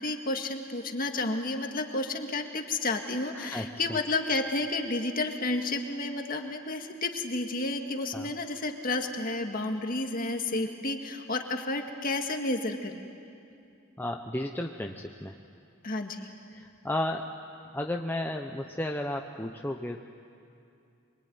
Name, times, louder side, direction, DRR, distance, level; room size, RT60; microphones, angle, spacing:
voice 1, 0.0-13.0 15.8-16.2, left 2 dB, 45° left, 4 dB, 1.9 m, -31 dB
voice 2, 3.3-3.9 8.1-8.3 14.0-15.3 16.5-17.3 17.7-20.0, left 1 dB, 10° left, 2 dB, 0.8 m, -33 dB
25.5 x 23.5 x 9.5 m, 2.5 s
head